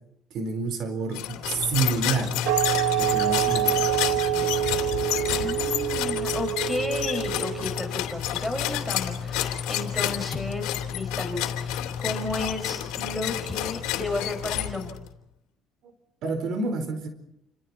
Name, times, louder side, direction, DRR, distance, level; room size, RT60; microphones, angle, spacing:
voice 1, 0.3-2.4 3.0-3.7 15.8-15.9 16.2-17.1, right 4 dB, 60° right, 8 dB, 4.4 m, -28 dB
sound 1, 1.1-15.1, left 11 dB, 85° left, 3.1 m, -29 dB
sound 2, 2.5-7.9, right 15 dB, 80° right, 1.5 m, -26 dB
voice 2, 5.3-14.9, left 2 dB, ahead, 2 dB, 5.9 m, -33 dB
29.0 x 26.5 x 4.3 m, 0.79 s
cardioid pair, 115°, 0 cm